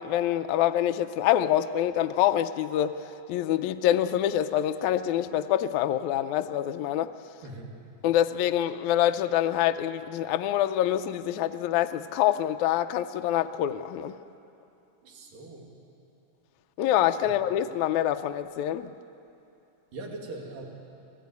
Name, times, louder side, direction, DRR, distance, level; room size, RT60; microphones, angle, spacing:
voice 1, 0.0-3.0 3.3-7.1 8.0-14.2 16.8-18.9, left 11 dB, 75° left, 9 dB, 1.8 m, -26 dB
voice 2, 15.0-15.8 17.2-17.3 19.9-20.6, right 2 dB, 80° right, 0 dB, 4.2 m, -41 dB
26.5 x 16.0 x 9.4 m, 2.8 s
omnidirectional pair, 3.8 m